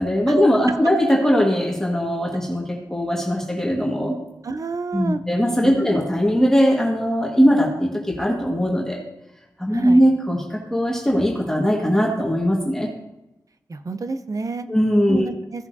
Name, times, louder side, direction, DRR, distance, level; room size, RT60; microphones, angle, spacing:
voice 1, 0.0-4.2 4.9-9.0 9.6-12.9 14.7-15.3, equal, 5° left, -2 dB, 1.7 m, -20 dB
voice 2, 4.4-5.2 5.6-5.8 9.7-10.0 13.7-14.7 15.1-15.7, right 3 dB, 50° right, 11 dB, 0.7 m, -29 dB
15.5 x 7.1 x 2.7 m, 0.92 s
wide cardioid pair, 75°, 7 cm